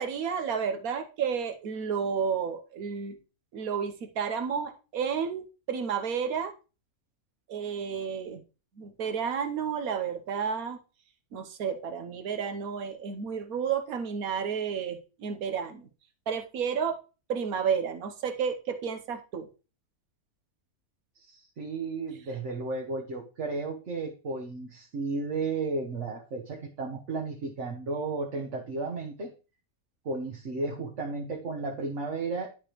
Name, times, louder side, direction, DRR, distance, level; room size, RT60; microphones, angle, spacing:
voice 1, 0.0-3.2 3.5-6.5 7.5-8.4 8.8-10.8 11.3-15.9 16.3-17.0 17.3-19.5, right 7 dB, 75° right, 8 dB, 1.4 m, -31 dB
voice 2, 21.1-29.3 30.0-32.5, right 3 dB, 55° right, 0 dB, 1.4 m, -33 dB
11.0 x 5.0 x 3.0 m, 0.32 s
omnidirectional pair, 1.5 m